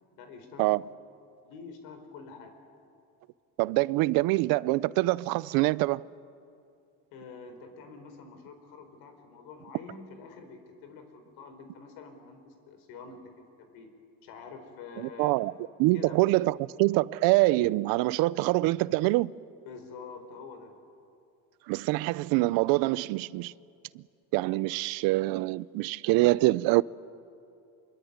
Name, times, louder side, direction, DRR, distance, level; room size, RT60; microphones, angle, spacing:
voice 1, 0.2-0.7 1.4-2.5 7.1-13.9 14.2-15.5 15.9-16.3 19.6-20.8, left 5 dB, 80° left, 4.5 m, -47 dB
voice 2, 3.6-6.0 15.0-15.5 15.8-19.3 21.7-23.5 24.3-26.8, right 20 dB, 75° right, 0.7 m, -25 dB
26.0 x 22.5 x 9.6 m
cardioid pair, 140°, 35 cm